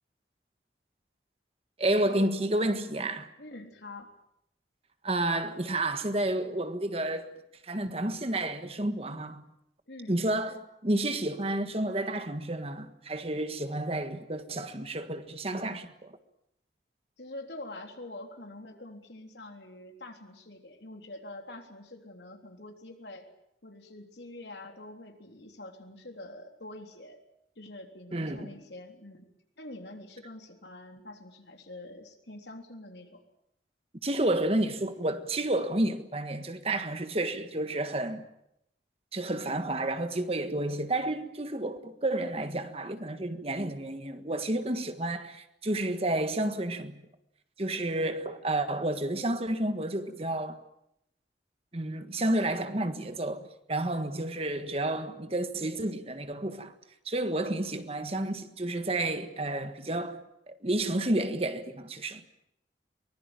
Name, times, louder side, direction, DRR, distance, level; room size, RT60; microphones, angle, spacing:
voice 1, 1.8-3.3 5.0-7.3 7.6-9.4 10.1-16.1 28.1-28.5 34.0-38.3 39.1-47.0 47.6-50.6 51.7-56.7 57.0-62.2, right 1 dB, 35° right, 1.6 m, -30 dB
voice 2, 3.4-4.1 9.9-10.2 17.2-23.3 23.6-27.2 27.6-29.3 29.6-33.2, left 2 dB, 75° left, 3.7 m, -45 dB
23.5 x 20.5 x 9.0 m
head